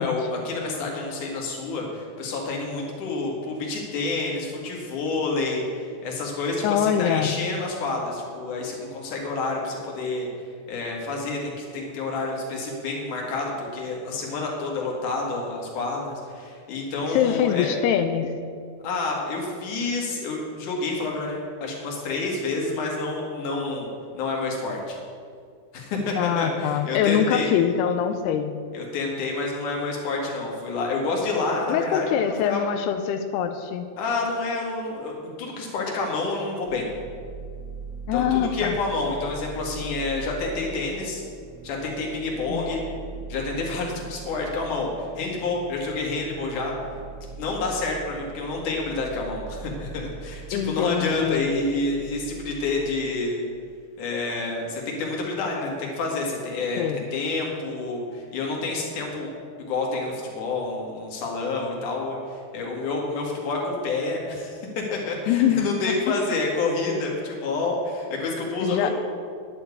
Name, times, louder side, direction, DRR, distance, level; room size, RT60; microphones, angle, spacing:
voice 1, 0.0-10.3 10.7-17.7 18.8-23.9 24.1-25.0 25.7-27.5 28.7-32.6 34.0-35.1 35.4-36.9 38.1-41.2 41.6-42.8 43.3-46.7 47.4-53.4 54.0-59.3 59.7-64.6 64.9-68.9, left 3 dB, 55° left, -1 dB, 3.3 m, -28 dB
voice 2, 6.6-7.4 17.1-18.3 26.2-28.5 31.7-33.9 38.1-38.8 42.5-42.7 50.5-51.5 56.7-57.1 65.3-65.7 68.6-68.9, left 9 dB, 90° left, 8 dB, 2.7 m, -23 dB
sound 1, 36.7-53.1, right 5 dB, 80° right, 2.1 m, -41 dB
10.5 x 7.2 x 8.3 m, 2.2 s
omnidirectional pair, 4.6 m